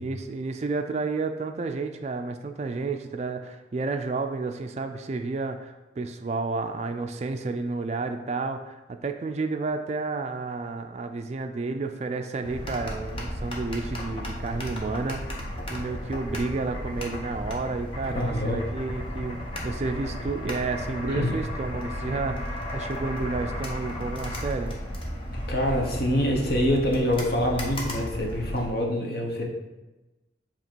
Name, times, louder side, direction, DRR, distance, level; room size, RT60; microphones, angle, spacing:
voice 1, 0.0-15.2 15.5-24.7, right 3 dB, 35° right, 6 dB, 0.3 m, -31 dB
sound 1, 12.4-28.7, equal, 30° left, 0.8 m, -34 dB
voice 2, 18.1-18.6 21.1-21.4 25.5-29.5, left 1 dB, 55° left, 0 dB, 1.0 m, -25 dB
7.4 x 3.0 x 4.5 m, 1.1 s
head